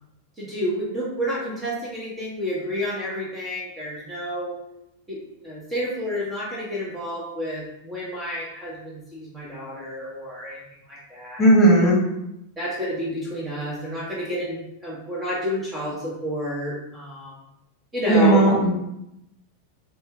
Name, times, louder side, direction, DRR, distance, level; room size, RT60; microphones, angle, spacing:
voice 1, 0.4-4.6 5.1-11.5 11.8-11.9 12.6-17.4 17.9-18.4, equal, 15° right, -6 dB, 1.0 m, -30 dB
voice 2, 11.4-12.0 18.1-18.7, right 1 dB, 15° left, -5 dB, 1.2 m, -15 dB
4.2 x 2.3 x 3.4 m, 0.85 s
figure-of-eight pair, 90°, 0 cm